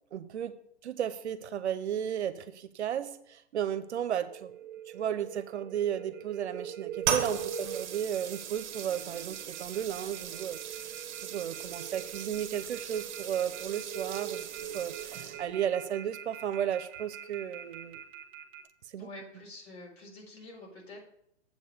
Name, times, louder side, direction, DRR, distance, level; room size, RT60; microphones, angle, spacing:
voice 1, 0.1-0.6 0.8-4.5 4.9-10.6 11.2-18.0 18.9-19.1, right 9 dB, 70° right, 12 dB, 0.9 m, -34 dB
sound 1, 3.9-18.6, right 8 dB, 15° right, 0.6 m, -43 dB
sound 2, 7.0-15.6, right 8 dB, 40° right, 1.2 m, -38 dB
voice 2, 19.0-21.0, left 1 dB, 60° left, -1 dB, 4.2 m, -47 dB
7.8 x 5.5 x 6.7 m, 0.72 s
hypercardioid pair, 155°, 35 cm